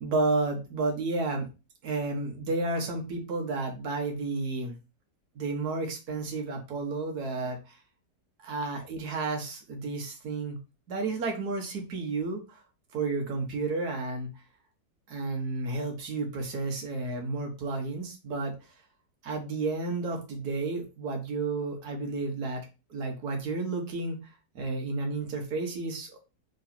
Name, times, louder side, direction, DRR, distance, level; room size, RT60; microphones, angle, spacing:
voice 1, 0.0-1.5 1.8-4.8 5.4-7.8 8.4-10.6 10.9-12.6 12.9-14.3 15.1-18.5 19.2-22.6 22.9-24.3 24.6-26.2, right 3 dB, 65° right, 2 dB, 1.6 m, -31 dB
3.9 x 3.1 x 4.2 m, 0.30 s
omnidirectional pair, 1.9 m